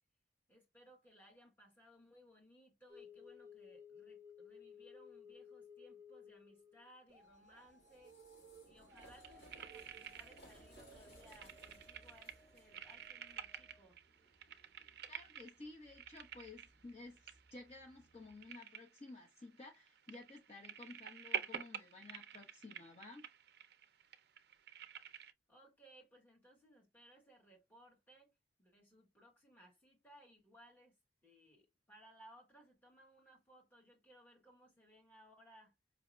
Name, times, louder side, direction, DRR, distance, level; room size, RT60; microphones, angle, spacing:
voice 1, 0.5-8.1 8.6-14.0 25.5-28.3 28.6-31.0 31.2-35.7, equal, 10° left, 1.2 m, -63 dB
sound 1, 2.9-13.9, left 5 dB, 15° right, 0.7 m, -60 dB
sound 2, 7.1-18.5, right 3 dB, 55° left, 1.9 m, -63 dB
sound 3, 8.9-10.7 10.9-25.3, right 9 dB, 55° right, 0.4 m, -49 dB
voice 2, 15.1-23.3, left 2 dB, 35° left, 0.8 m, -54 dB
5.0 x 2.7 x 2.2 m
head